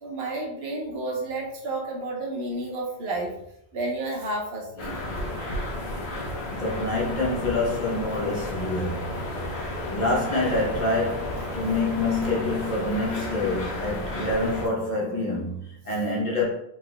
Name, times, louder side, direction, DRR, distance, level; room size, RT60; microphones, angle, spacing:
voice 1, 0.0-3.3 3.7-5.0 9.5-9.8 12.2-12.4, right 2 dB, 75° right, 1.2 m, -31 dB
sound 1, 4.8-14.7, left 1 dB, 80° left, 1.1 m, -32 dB
voice 2, 6.5-9.5 9.9-16.5, left 2 dB, 45° left, 1.0 m, -27 dB
4.2 x 4.1 x 2.2 m
omnidirectional pair, 1.1 m